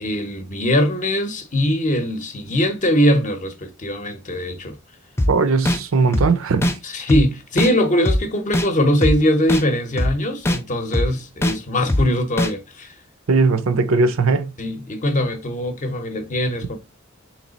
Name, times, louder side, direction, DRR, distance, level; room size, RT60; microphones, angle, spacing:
voice 1, 0.0-4.8 6.8-12.9 14.6-16.8, left 1 dB, 35° left, 0.7 m, -21 dB
sound 1, 5.2-5.3 5.7-5.8 6.1-6.3 6.6-6.7 7.1-7.2 7.6-7.7 8.1-8.2 8.5-8.7 9.0-9.1 9.5-9.6 10.0-10.1 10.4-10.6 10.9-11.1 11.4-11.5 11.9-12.0 12.4-12.5, left 1 dB, 10° left, 0.3 m, -19 dB
voice 2, 5.3-6.8 13.3-14.6, right 4 dB, 70° right, 0.5 m, -18 dB
3.2 x 3.1 x 3.9 m
head